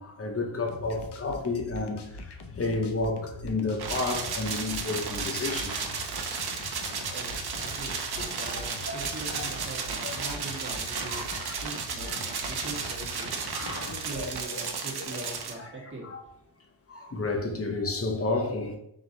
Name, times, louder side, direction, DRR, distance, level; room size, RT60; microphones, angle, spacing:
voice 1, 0.0-5.8 8.2-8.6 9.3-9.5 10.0-10.4 11.1-11.5 12.0-12.2 13.5-13.9 14.2-14.6 15.0-15.3 15.6-15.7 16.1-16.2 16.9-18.8, left 3 dB, 30° left, 0.8 m, -32 dB
sound 1, 0.7-14.4, left 2 dB, 65° left, 0.6 m, -43 dB
sound 2, 3.8-15.5, right 5 dB, 55° right, 0.7 m, -34 dB
voice 2, 7.1-16.3, right 2 dB, 25° right, 1.5 m, -42 dB
3.8 x 3.0 x 3.9 m
wide cardioid pair, 85°, 45 cm